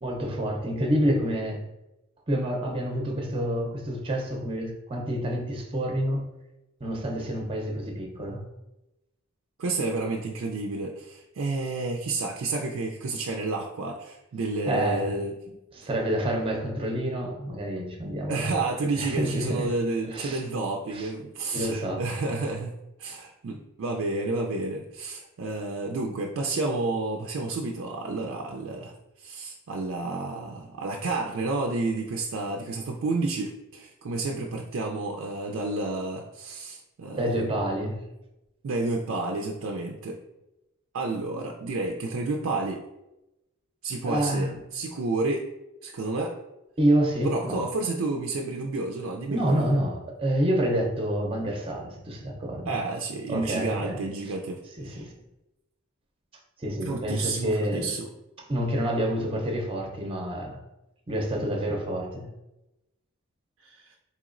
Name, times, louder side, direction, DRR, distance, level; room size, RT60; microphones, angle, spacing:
voice 1, 0.0-1.6 2.3-6.2 6.8-8.4 14.7-15.1 15.7-18.6 18.9-19.7 20.1-20.4 20.9-21.1 21.5-22.0 37.1-38.0 44.0-44.6 46.8-47.6 49.3-52.7 53.3-54.0 54.8-55.1 56.6-57.9 58.5-60.6 61.1-62.3, right 1 dB, 25° right, 1 dB, 0.6 m, -28 dB
voice 2, 9.6-15.3 18.3-37.5 38.6-40.2 40.9-42.8 43.8-45.5 45.8-46.3 47.2-49.6 52.7-55.1 56.8-58.1 63.6-64.0, right 3 dB, 70° right, 1 dB, 0.4 m, -30 dB
4.2 x 2.9 x 2.5 m, 0.94 s
head